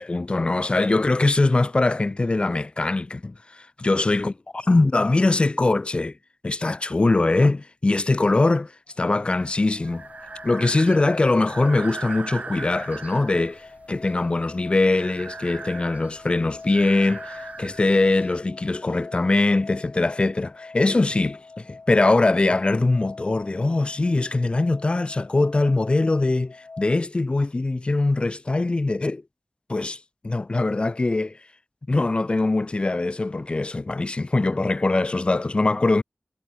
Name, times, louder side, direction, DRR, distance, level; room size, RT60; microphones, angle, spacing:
voice 1, 0.0-6.1 6.4-8.7 9.0-10.0 10.4-29.2 29.7-30.0 30.2-31.4 31.9-36.0, left 2 dB, 45° left, 0.7 m, -22 dB
sound 1, 8.9-27.1, left 3 dB, 70° left, 3.6 m, -44 dB
Breathing, 9.4-18.4, right 4 dB, 75° right, 2.4 m, -39 dB
cardioid pair, 40°, 3 cm